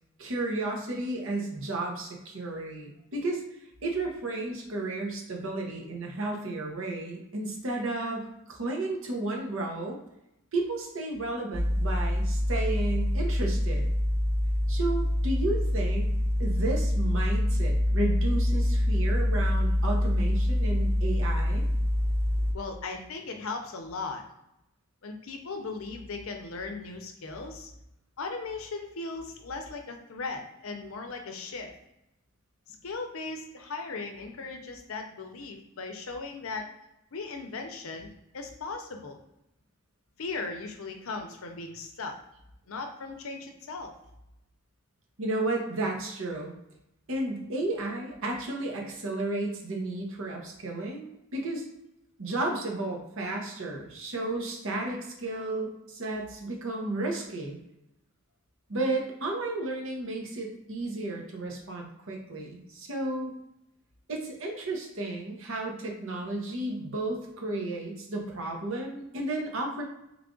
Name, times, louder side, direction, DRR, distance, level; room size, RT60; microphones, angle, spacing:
voice 1, 0.2-3.4 3.8-10.0 10.5-13.9 14.7-16.1 16.4-21.7 45.2-46.5 47.1-51.6 52.2-57.6 58.7-63.3 64.1-69.8, right 2 dB, 60° right, 0 dB, 0.9 m, -33 dB
sound 1, 11.5-22.5, left 1 dB, 10° right, 0.4 m, -26 dB
voice 2, 22.5-24.2 25.0-27.7 28.2-31.7 32.7-36.6 37.1-38.1 38.3-39.2 40.2-42.2 42.7-43.9, left 3 dB, 65° left, 4 dB, 0.6 m, -37 dB
3.3 x 2.4 x 3.7 m, 0.87 s
head